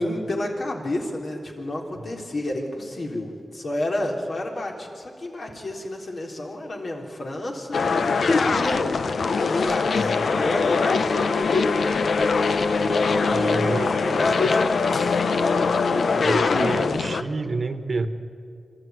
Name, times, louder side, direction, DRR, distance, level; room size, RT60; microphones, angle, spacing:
voice 1, 0.0-8.9 9.5-11.1 13.0-15.2, left 1 dB, 60° left, 0 dB, 3.7 m, -30 dB
sound 1, 7.7-17.2, left 4 dB, 75° left, 0.9 m, -22 dB
voice 2, 12.8-13.9 16.1-18.1, right 3 dB, 50° right, 10 dB, 1.3 m, -29 dB
26.5 x 13.5 x 9.5 m, 2.4 s
wide cardioid pair, 90°, 0 cm